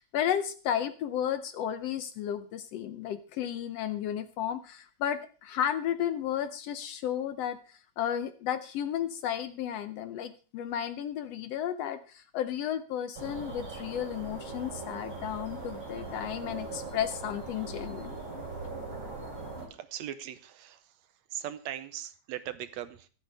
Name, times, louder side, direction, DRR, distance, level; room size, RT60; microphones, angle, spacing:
voice 1, 0.0-18.2, left 10 dB, 70° left, 11 dB, 1.6 m, -33 dB
sound 1, 13.1-19.7, right 3 dB, 40° right, 4.1 m, -40 dB
voice 2, 19.6-23.1, right 11 dB, 75° right, 12 dB, 1.9 m, -40 dB
24.5 x 8.3 x 3.4 m, 0.37 s
omnidirectional pair, 3.4 m